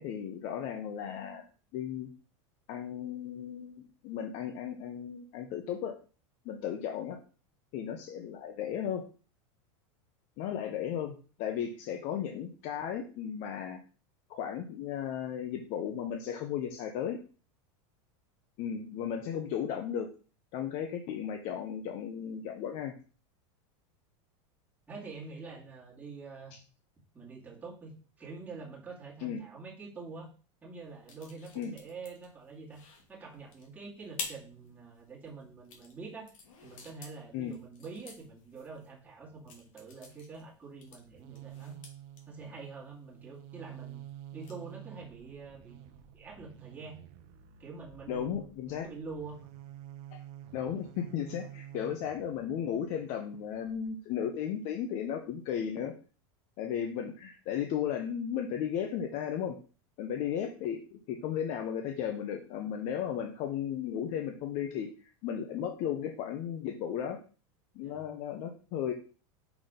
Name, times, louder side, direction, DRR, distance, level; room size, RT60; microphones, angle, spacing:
voice 1, 0.0-1.4 1.7-2.1 2.7-5.9 6.4-7.2 7.7-9.0 10.4-13.8 14.3-17.2 18.6-20.1 20.5-23.0 29.2-29.5 31.6-31.7 37.3-37.6 48.1-48.9 50.1-50.2 50.5-55.9 56.6-59.6 60.0-67.2 67.7-68.9, left 9 dB, 45° left, 5 dB, 0.8 m, -35 dB
voice 2, 24.9-26.5 27.1-30.3 30.6-32.8 33.1-36.3 36.6-41.7 42.3-44.0 44.3-47.0 47.6-49.4 67.8-68.0, right 4 dB, 10° right, -4 dB, 2.2 m, -46 dB
sound 1, 30.8-44.7, left 4 dB, 85° left, 2.3 m, -50 dB
sound 2, 40.8-53.9, right 11 dB, 45° right, 0.8 m, -50 dB
6.0 x 4.0 x 5.1 m, 0.37 s
supercardioid pair, 145°, 16 cm